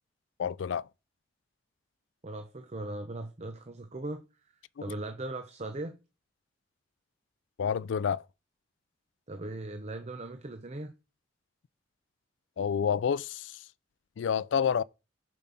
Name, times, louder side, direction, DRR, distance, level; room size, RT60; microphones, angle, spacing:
voice 1, 0.4-0.9 4.8-4.9 7.6-8.2 12.6-13.7 14.2-14.8, left 7 dB, 75° left, 0.4 m, -29 dB
voice 2, 2.2-4.2 4.8-6.0 9.3-10.9, right 2 dB, 35° right, 0.7 m, -38 dB
7.2 x 5.2 x 5.7 m
head